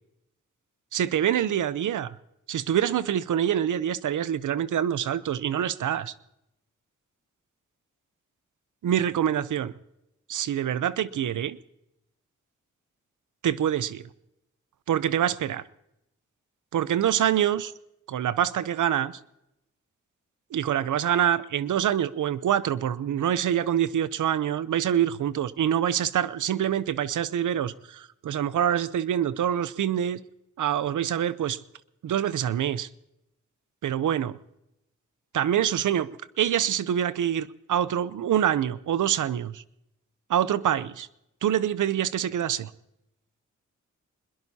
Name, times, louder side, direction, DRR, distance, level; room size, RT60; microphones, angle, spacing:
voice 1, 0.9-2.1 2.5-6.1 8.8-9.7 10.3-11.6 13.4-14.0 14.9-15.6 16.7-17.7 18.1-19.1 20.5-30.2 30.6-31.6 32.0-32.9 33.8-34.4 35.3-36.1 36.4-39.6 40.3-41.1 41.4-42.7, right 10 dB, 75° right, 0.7 m, -25 dB
23.5 x 21.0 x 2.8 m
cardioid pair, 45°, 31 cm